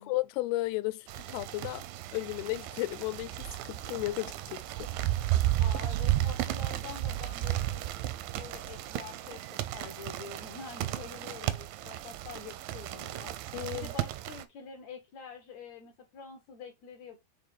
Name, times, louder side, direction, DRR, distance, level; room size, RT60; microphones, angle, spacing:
voice 1, 0.0-1.9 2.1-4.9 13.5-13.9, left 19 dB, 85° left, 2.5 m, -34 dB
sound 1, 1.1-14.4, right 14 dB, 80° right, 2.1 m, -33 dB
voice 2, 5.6-7.9 8.3-17.3, left 6 dB, 65° left, 1.9 m, -46 dB
6.4 x 3.7 x 4.1 m
omnidirectional pair, 4.5 m